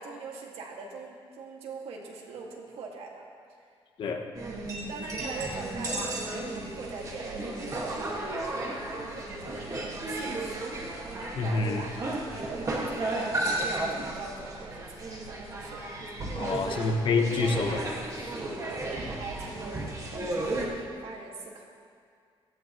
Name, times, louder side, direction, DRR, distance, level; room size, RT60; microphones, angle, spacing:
voice 1, 0.0-3.2 4.9-10.7 11.4-15.8 16.4-16.8 18.6-21.6, right 4 dB, 85° right, 0 dB, 2.0 m, -42 dB
voice 2, 4.0-4.3 11.3-11.8 16.3-18.4, left 3 dB, 55° left, 4 dB, 1.1 m, -28 dB
sound 1, 4.3-20.7, right 2 dB, 35° right, 1.7 m, -34 dB
17.0 x 14.0 x 3.1 m, 2.2 s
cardioid pair, 160°, 10 cm